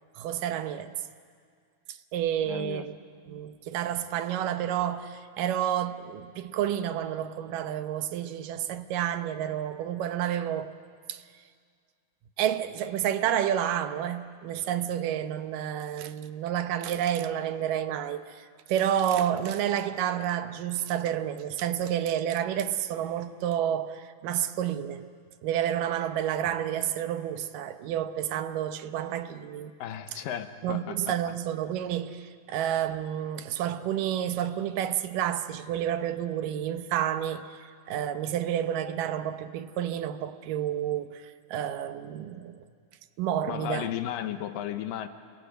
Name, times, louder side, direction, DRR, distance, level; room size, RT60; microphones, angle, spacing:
voice 1, 0.2-0.9 2.1-2.9 3.3-10.7 11.1-11.2 12.4-25.1 25.4-29.7 30.1-30.2 30.6-42.6 43.2-43.9, right 10 dB, 75° right, 2.5 m, -30 dB
voice 2, 2.5-2.8 29.8-31.0 43.5-45.1, left 11 dB, 80° left, 2.7 m, -34 dB
27.0 x 22.0 x 9.1 m
omnidirectional pair, 4.0 m